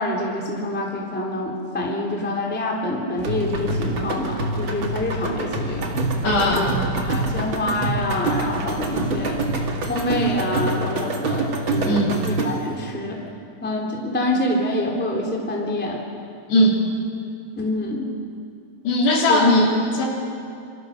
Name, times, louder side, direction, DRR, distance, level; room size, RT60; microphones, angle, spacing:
voice 1, 0.0-5.9 6.6-6.7 7.1-9.4 9.9-13.3 13.6-16.0 17.6-18.1 19.3-19.5, left 1 dB, 5° left, -1 dB, 2.3 m, -26 dB
sound 1, 3.2-12.8, right 2 dB, 45° right, 1.8 m, -26 dB
sound 2, 3.2-10.4, right 5 dB, 70° right, 3.2 m, -35 dB
voice 2, 6.2-6.8 11.8-12.2 16.5-16.8 18.8-20.1, left 1 dB, 80° left, -1 dB, 5.6 m, -18 dB
27.0 x 24.5 x 6.5 m, 2.4 s
omnidirectional pair, 4.9 m